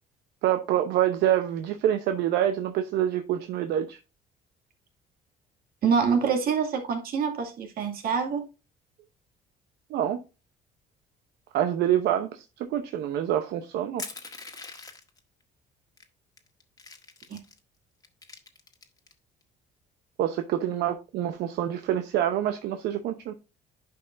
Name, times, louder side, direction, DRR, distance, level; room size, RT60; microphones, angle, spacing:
voice 1, 0.4-4.0 9.9-10.2 11.5-14.0 20.2-23.3, right 11 dB, 80° right, 0.8 m, -26 dB
voice 2, 5.8-8.5 17.3-17.4, right 6 dB, 60° right, 2.3 m, -26 dB
Crushing, 14.0-15.2 16.0-16.1 16.4-17.6 18.0-19.1, left 3 dB, 20° left, 1.5 m, -42 dB
10.5 x 5.5 x 2.6 m
cardioid pair, 110°, 17 cm